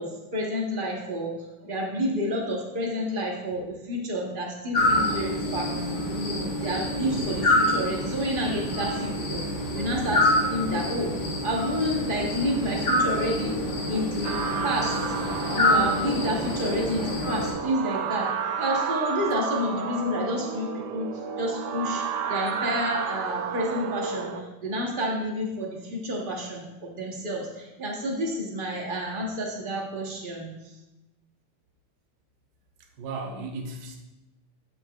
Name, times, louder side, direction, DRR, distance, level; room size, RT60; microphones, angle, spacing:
voice 1, 0.0-5.8 6.1-11.1 11.4-13.6 13.9-15.1 15.5-18.3 18.6-21.1 21.4-30.7, equal, 45° right, -1 dB, 0.7 m, -30 dB
sound 1, 4.7-17.5, left 1 dB, 80° left, 2.4 m, -27 dB
sound 2, 14.2-24.4, right 6 dB, 80° right, 0.9 m, -32 dB
voice 2, 33.0-34.0, right 3 dB, 65° right, 2 dB, 1.3 m, -35 dB
8.2 x 6.1 x 2.3 m, 1.0 s
omnidirectional pair, 2.3 m